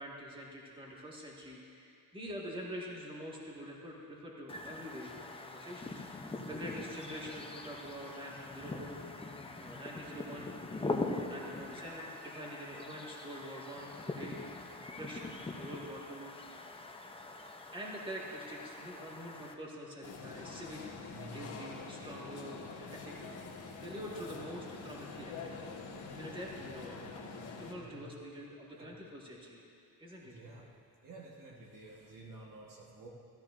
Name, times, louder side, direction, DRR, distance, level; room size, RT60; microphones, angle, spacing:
voice 1, 0.0-5.1 5.4-9.0 9.6-10.5 11.1-14.6 15.0-16.3 17.4-27.1 27.6-29.6 30.0-30.4, equal, 15° right, -4 dB, 1.8 m, -46 dB
sound 1, 4.5-19.5, left 2 dB, 15° left, 0.6 m, -43 dB
sound 2, 20.0-27.7, left 4 dB, 85° left, 1.7 m, -46 dB
voice 2, 21.1-21.5 26.0-26.1 27.8-28.0 28.7-28.9 30.2-30.7 31.0-33.1, right 2 dB, 55° right, -2 dB, 1.4 m, -51 dB
16.0 x 14.0 x 2.6 m, 2.5 s
cardioid pair, 135°, 39 cm